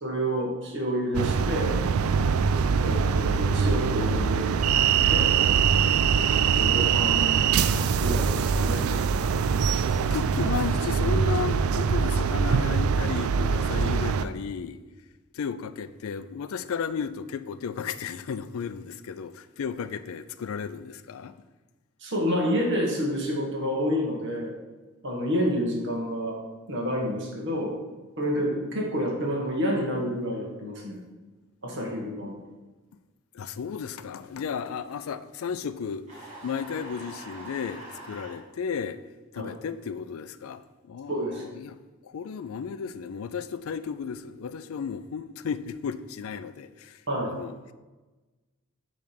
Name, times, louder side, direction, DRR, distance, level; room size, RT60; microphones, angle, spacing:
voice 1, 0.0-1.8 2.8-5.3 6.4-7.5 8.0-8.9 22.0-24.5 25.0-26.4 26.7-27.7 28.2-31.0 31.6-32.3 39.4-39.5 41.1-41.4 47.1-47.3, equal, 60° right, 1.5 m, -29 dB
sound 1, 1.1-14.2, right 6 dB, 80° right, 0.3 m, -23 dB
voice 2, 4.5-5.1 10.1-14.8 15.3-21.3 33.3-39.0 39.3-41.8 42.0-47.5, left 6 dB, 75° left, 0.4 m, -34 dB
sound 2, 36.1-38.4, right 1 dB, 35° right, 2.2 m, -43 dB
7.2 x 3.3 x 5.8 m
head